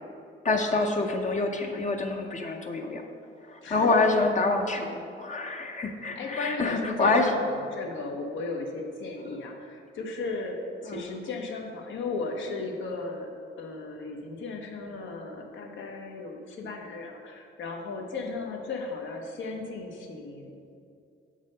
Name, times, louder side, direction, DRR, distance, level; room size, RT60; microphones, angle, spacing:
voice 1, 0.4-3.0 3.5-7.2 10.9-11.0, left 3 dB, 40° left, 3 dB, 0.6 m, -26 dB
voice 2, 6.1-13.3 13.6-20.8, left 3 dB, 75° left, 2 dB, 1.0 m, -36 dB
6.3 x 4.0 x 6.3 m, 2.4 s
cardioid pair, 90°, 20 cm